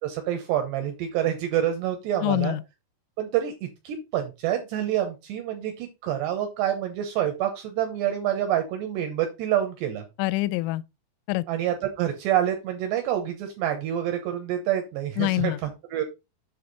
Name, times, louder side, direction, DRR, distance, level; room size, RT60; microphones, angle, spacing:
voice 1, 0.0-2.6 3.2-10.0 11.5-16.0, right 11 dB, 75° right, 2.7 m, -27 dB
voice 2, 2.2-2.6 10.2-10.8 11.3-11.4 15.2-15.6, left 19 dB, 85° left, 3.0 m, -25 dB
7.8 x 5.7 x 4.0 m
omnidirectional pair, 5.8 m